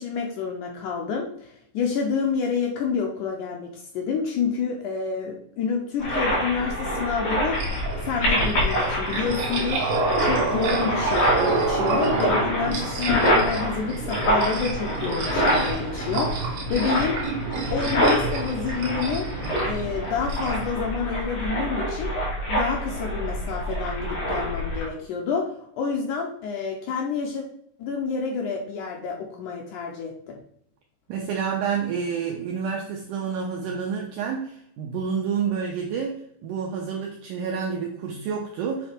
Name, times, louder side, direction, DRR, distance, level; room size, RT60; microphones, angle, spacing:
voice 1, 0.0-7.6 8.1-17.2 17.7-19.3 19.6-22.1 22.5-27.5 27.8-30.4, left 5 dB, 85° left, 1 dB, 1.8 m, -28 dB
sound 1, 6.0-24.9, equal, 60° left, 3.9 m, -26 dB
sound 2, 7.5-20.7, right 3 dB, 65° right, 2.1 m, -29 dB
voice 2, 31.1-38.9, right 6 dB, 90° right, 1 dB, 1.8 m, -29 dB
7.9 x 3.3 x 4.3 m, 0.70 s
omnidirectional pair, 4.5 m